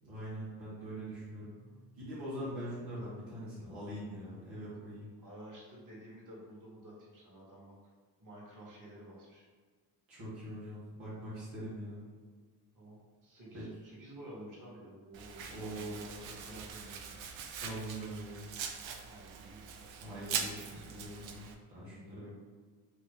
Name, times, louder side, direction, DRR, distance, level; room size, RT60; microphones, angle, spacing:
voice 1, 0.0-1.5 2.0-5.1 10.1-12.0 13.5-13.6 15.5-16.0 16.2-16.6 17.6-18.5 20.0-22.4, right 1 dB, 90° right, -9 dB, 1.2 m, -43 dB
voice 2, 1.3-1.9 3.5-3.7 5.2-7.7 8.2-9.4 12.7-17.2 18.9-19.9 21.7-22.4, right 1 dB, 40° right, -4 dB, 1.4 m, -52 dB
Domestic sounds home sounds, 15.1-21.5, right 7 dB, 70° right, 0.5 m, -42 dB
2.9 x 2.3 x 3.5 m, 1.5 s
supercardioid pair, 50°, 47 cm